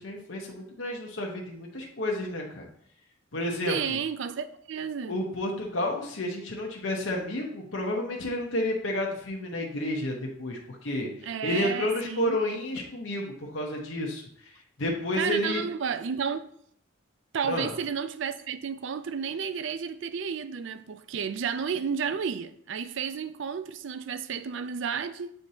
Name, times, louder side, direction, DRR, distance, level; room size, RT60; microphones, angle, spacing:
voice 1, 0.0-2.7 3.3-4.0 5.1-14.2 14.8-15.6 17.5-17.7, left 1 dB, 75° left, 0.9 m, -31 dB
voice 2, 3.7-5.2 11.2-12.4 15.2-16.4 17.3-25.3, right 6 dB, 65° right, 0.4 m, -32 dB
7.8 x 4.4 x 2.8 m
head